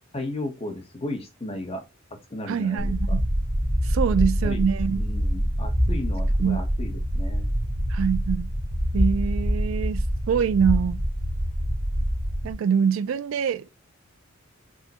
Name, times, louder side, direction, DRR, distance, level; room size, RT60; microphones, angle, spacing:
voice 1, 0.1-1.8 2.3-3.2 4.1-7.5, left 1 dB, 30° left, 0.9 m, -35 dB
voice 2, 2.5-3.2 3.8-5.1 6.4-6.6 7.9-8.5 8.9-11.0 12.4-13.7, right 7 dB, 85° right, 0.3 m, -24 dB
sound 1, 2.8-12.5, equal, 55° right, 1.0 m, -25 dB
6.2 x 2.1 x 2.8 m
head